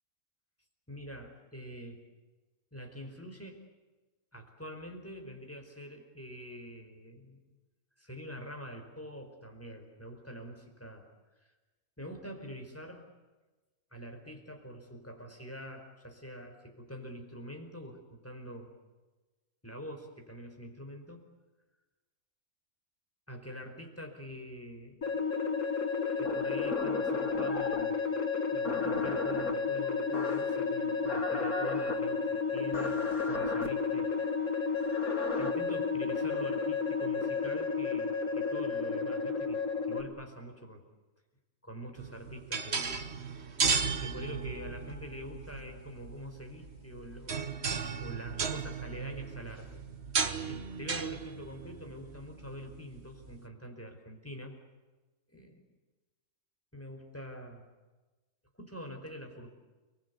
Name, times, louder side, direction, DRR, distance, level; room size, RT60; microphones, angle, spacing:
voice 1, 0.9-2.1 2.7-3.6 4.3-7.4 8.0-11.1 12.0-13.1 13.9-18.7 19.6-21.2 23.3-25.0 26.1-28.0 28.5-34.1 35.4-40.8 41.6-42.9 44.0-47.5 48.0-49.8 50.5-54.6 55.3-55.6 56.7-57.6 58.6-59.5, equal, 10° left, 4 dB, 4.7 m, -45 dB
sound 1, 25.0-40.0, left 5 dB, 65° left, 2.7 m, -32 dB
sound 2, 26.2-27.9 28.6-29.5 30.1-30.6 31.0-32.0 32.7-33.7 34.8-35.5, left 2 dB, 85° left, 3.2 m, -37 dB
sound 3, 42.0-53.3, right 5 dB, 50° right, 1.6 m, -35 dB
30.0 x 22.0 x 8.4 m, 1.2 s
omnidirectional pair, 1.5 m